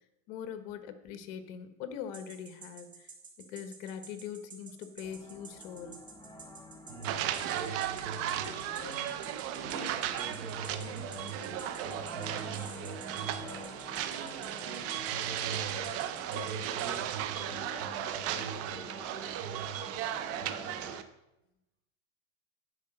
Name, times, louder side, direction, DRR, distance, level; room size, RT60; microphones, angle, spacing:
voice 1, 0.3-3.1 3.5-6.0, left 8 dB, 55° left, 9 dB, 1.2 m, -42 dB
sound 1, 2.1-17.2, right 5 dB, 20° right, 2.3 m, -49 dB
sound 2, 5.0-21.0, left 2 dB, 10° left, 0.8 m, -50 dB
voice 2, 6.9-15.9 16.3-20.0 20.4-21.0, right 4 dB, 75° right, -5 dB, 2.3 m, -44 dB
sound 3, 7.0-21.0, right 11 dB, 40° right, 0.7 m, -36 dB
10.5 x 4.8 x 6.4 m, 0.91 s
supercardioid pair, 130°, 39 cm